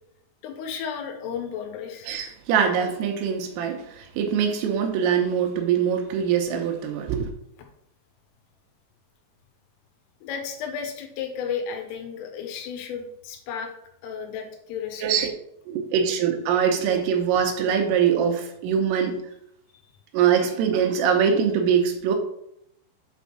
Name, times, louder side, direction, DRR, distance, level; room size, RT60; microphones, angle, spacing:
voice 1, 0.4-2.1 10.2-13.7 14.0-15.3, left 7 dB, 80° left, 3.6 m, -33 dB
voice 2, 2.1-7.3 15.0-15.3 15.7-19.2 20.1-22.2, right 7 dB, 85° right, 3.6 m, -23 dB
8.3 x 3.6 x 5.9 m
omnidirectional pair, 5.9 m